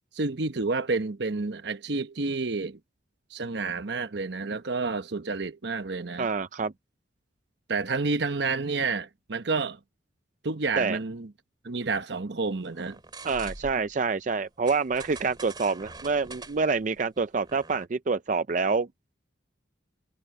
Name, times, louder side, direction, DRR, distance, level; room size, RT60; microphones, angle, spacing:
voice 1, 0.1-2.8 3.3-6.3 7.7-9.8 10.4-11.3 11.6-13.0, right 3 dB, 65° right, 1.0 m, -29 dB
voice 2, 6.2-6.7 10.8-11.0 13.2-18.9, right 4 dB, 40° right, 0.5 m, -27 dB
sound 1, 12.7-13.9 14.7-17.9, right 3 dB, 25° right, 2.7 m, -44 dB
head